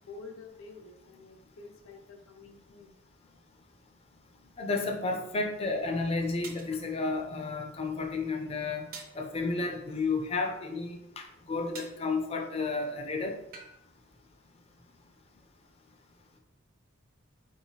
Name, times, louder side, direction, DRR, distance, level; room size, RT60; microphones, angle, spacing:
voice 1, 0.0-3.0, left 4 dB, 80° left, 3 dB, 0.6 m, -49 dB
voice 2, 4.6-8.9 9.1-13.4, left 3 dB, 30° left, 3 dB, 0.4 m, -32 dB
sound 1, 6.4-6.7 8.9-9.2 11.7-12.0 13.5-13.8, right 4 dB, 45° right, 0.5 m, -45 dB
4.6 x 2.8 x 2.8 m, 0.85 s
head